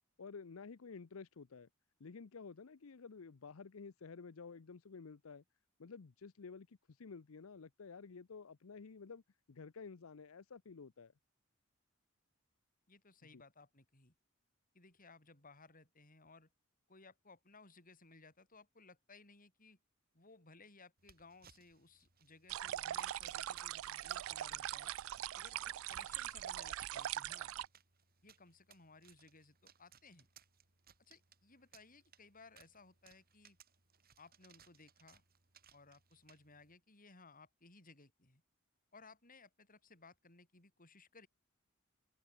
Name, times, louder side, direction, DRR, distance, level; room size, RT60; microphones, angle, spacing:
voice 1, 0.2-1.7 2.0-5.4 5.8-9.2 9.5-11.1 13.3-13.4, left 5 dB, 85° left, 0.7 m, -52 dB
voice 2, 12.9-14.1 14.7-16.5 16.9-19.8 20.1-24.9 25.4-27.5 28.2-30.3 31.0-33.6 34.2-35.2 35.7-38.4 38.9-41.3, left 3 dB, 45° left, 5.7 m, -61 dB
sound 1, 21.0-36.7, right 8 dB, 45° right, 5.3 m, -67 dB
sound 2, 22.5-27.7, right 12 dB, 70° right, 0.3 m, -42 dB
head